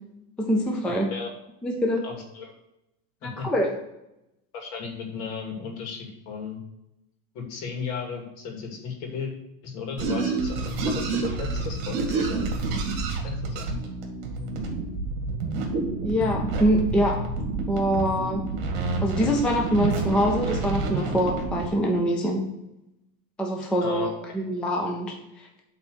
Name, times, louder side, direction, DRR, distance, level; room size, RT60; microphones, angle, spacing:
voice 1, 0.4-1.1 1.6-2.0 3.2-3.7 16.0-17.2 17.7-18.4 19.0-22.4 23.4-25.6, equal, 5° left, 1 dB, 0.3 m, -24 dB
voice 2, 2.0-2.5 3.2-3.5 4.5-6.6 7.3-9.3 9.6-12.4 13.2-13.6 23.8-24.1, left 5 dB, 60° left, 2 dB, 2.6 m, -35 dB
sound 1, 10.0-21.7, right 3 dB, 50° right, 2.1 m, -28 dB
8.1 x 4.0 x 6.9 m, 0.89 s
supercardioid pair, 155°, 40 cm